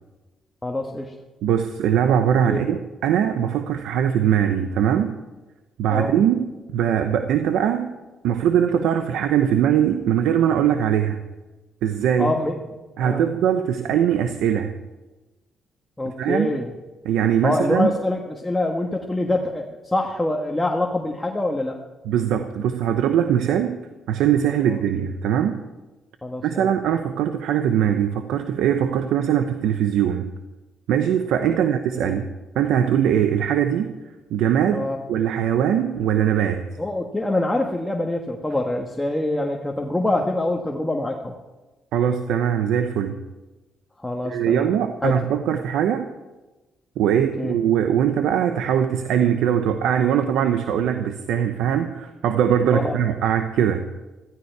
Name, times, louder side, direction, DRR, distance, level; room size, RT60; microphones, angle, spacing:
voice 1, 0.6-1.1 2.5-2.6 5.9-6.1 12.2-12.7 13.0-13.2 16.0-16.7 17.4-19.7 19.9-21.8 24.7-24.8 26.2-26.7 31.9-32.1 34.7-35.0 36.8-41.3 44.0-44.7 45.0-45.2 47.1-47.6 52.7-53.0, left 2 dB, 10° left, 0 dB, 1.5 m, -25 dB
voice 2, 1.4-5.1 5.8-8.0 8.2-11.2 11.8-12.3 13.0-14.7 16.2-16.6 17.0-17.9 22.0-23.8 24.1-25.6 26.4-30.3 30.9-32.3 32.6-33.9 34.3-36.7 41.9-43.2 44.2-46.1 47.0-53.9, right 9 dB, 85° right, 8 dB, 0.8 m, -21 dB
15.0 x 15.0 x 4.7 m, 1.1 s
cardioid pair, 90°, 0 cm